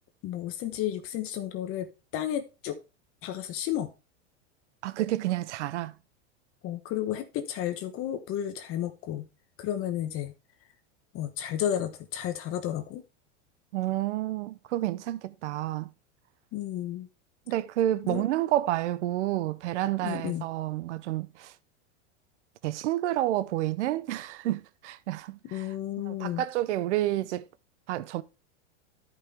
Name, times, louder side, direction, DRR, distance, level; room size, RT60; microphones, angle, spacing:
voice 1, 0.2-1.9 2.1-2.8 3.2-3.9 6.6-9.3 9.6-10.3 11.1-13.0 16.5-17.1 18.1-18.3 20.0-20.5 25.4-26.4, left 11 dB, 40° left, 1.1 m, -32 dB
voice 2, 4.8-5.9 13.7-15.9 17.5-21.5 22.6-27.5 27.9-28.2, right 14 dB, 80° right, 0.7 m, -30 dB
13.0 x 5.5 x 3.4 m
supercardioid pair, 130°, 35 cm